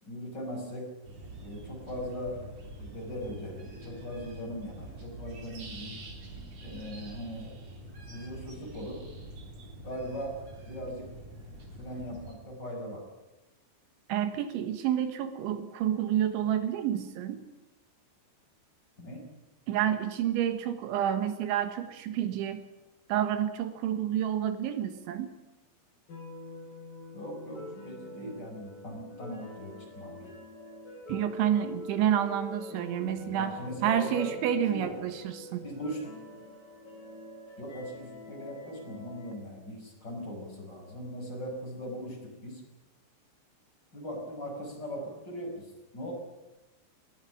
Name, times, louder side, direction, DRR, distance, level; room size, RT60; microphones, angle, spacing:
voice 1, 0.0-0.9 1.3-2.4 2.8-6.0 6.6-7.5 8.1-9.0 9.8-10.4 10.7-11.1 11.7-13.0 19.0-19.3 27.1-30.3 33.0-34.3 34.6-35.2 35.6-36.1 37.6-42.6 43.9-46.1, equal, 20° left, 1 dB, 5.7 m, -40 dB
sound 1, 1.0-12.3, right 1 dB, 40° right, 4.2 m, -45 dB
voice 2, 14.1-17.4 19.7-22.6 23.1-25.3 31.1-35.7, right 10 dB, 80° right, 9 dB, 3.9 m, -29 dB
sound 2, 26.1-39.3, left 2 dB, 50° left, 6.3 m, -45 dB
19.5 x 17.0 x 10.0 m, 1.0 s
omnidirectional pair, 5.4 m